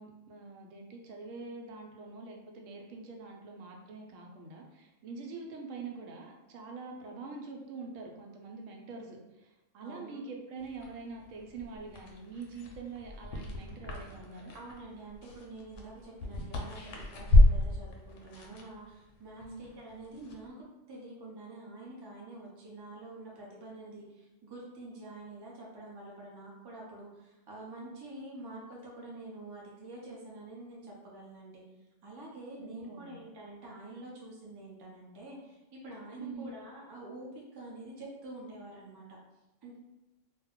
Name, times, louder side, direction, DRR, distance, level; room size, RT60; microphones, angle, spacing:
voice 1, 0.0-14.5 19.4-19.7 32.5-33.2 36.2-36.5, right 4 dB, 85° right, 1 dB, 0.9 m, -45 dB
voice 2, 9.8-10.2 14.5-31.6 32.0-39.0 39.6-39.8, right 2 dB, 35° right, -3 dB, 0.4 m, -47 dB
sound 1, 10.6-20.5, left 1 dB, 70° left, 0.8 m, -31 dB
2.4 x 2.2 x 3.5 m, 1.0 s
omnidirectional pair, 1.3 m